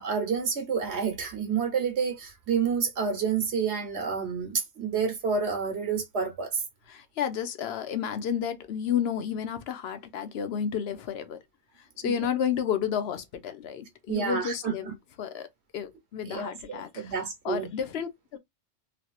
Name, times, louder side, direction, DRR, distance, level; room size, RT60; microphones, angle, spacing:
voice 1, 0.0-6.6 12.0-12.3 14.1-14.9 16.3-17.7, right 6 dB, 65° right, 1.2 m, -29 dB
voice 2, 6.9-11.4 12.0-14.9 15.2-15.5 15.7-18.4, left 8 dB, 65° left, 0.9 m, -31 dB
3.2 x 2.8 x 2.3 m
omnidirectional pair, 1.2 m